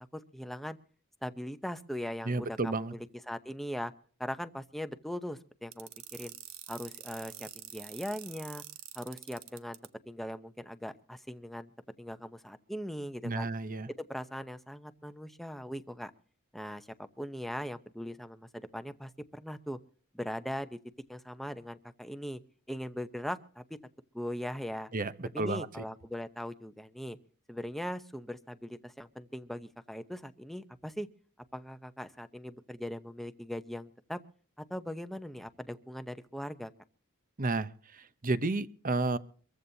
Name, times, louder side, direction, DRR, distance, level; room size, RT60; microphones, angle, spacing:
voice 1, 0.1-0.8 1.2-3.9 4.2-6.3 6.7-8.6 8.9-9.8 10.1-11.7 12.0-13.5 14.0-16.1 16.5-16.9 17.2-19.8 20.1-20.8 21.1-22.4 22.7-23.6 24.1-24.9 25.3-27.2 27.5-31.1 31.5-34.2 34.7-36.7, equal, ahead, 10 dB, 0.8 m, -40 dB
voice 2, 2.2-2.9 13.2-13.9 24.9-25.8 37.4-39.2, right 3 dB, 40° right, 13 dB, 0.8 m, -32 dB
sound 1, 5.7-9.9, right 13 dB, 65° right, 0.9 m, -46 dB
24.0 x 15.0 x 2.8 m, 0.44 s
head